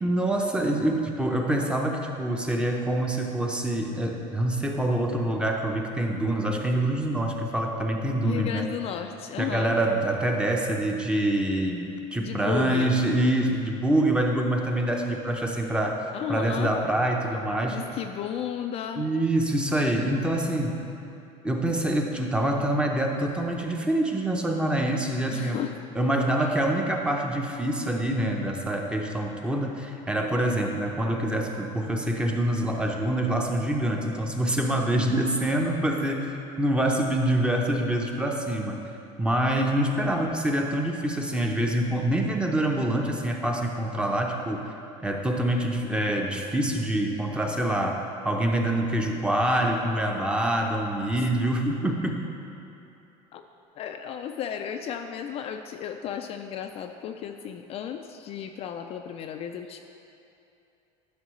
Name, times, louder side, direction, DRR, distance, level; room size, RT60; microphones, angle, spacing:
voice 1, 0.0-8.7 9.4-11.9 12.1-17.8 19.0-20.8 21.4-25.6 26.0-36.3 36.6-38.8 39.2-44.7 45.0-52.2, right 1 dB, 5° right, 1 dB, 0.7 m, -26 dB
voice 2, 8.2-9.8 12.2-13.0 16.1-16.7 17.7-19.1 25.3-25.7 26.4-26.6 53.3-53.4 53.8-59.8, left 9 dB, 40° left, 5 dB, 0.3 m, -34 dB
11.0 x 6.1 x 3.1 m, 2.8 s
cardioid pair, 130°, 15 cm